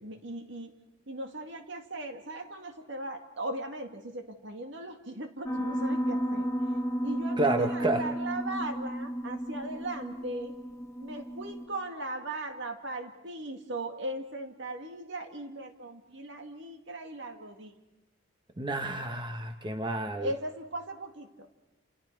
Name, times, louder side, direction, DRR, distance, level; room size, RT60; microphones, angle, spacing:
voice 1, 0.0-0.7 1.1-6.5 7.0-10.5 11.0-17.8 20.2-21.5, right 1 dB, 65° right, 5 dB, 2.1 m, -38 dB
Piano, 5.5-11.7, equal, 15° left, 2.0 m, -33 dB
voice 2, 7.4-8.0 18.6-20.3, right 2 dB, 25° right, 6 dB, 1.2 m, -29 dB
29.5 x 28.0 x 4.7 m, 1.0 s
head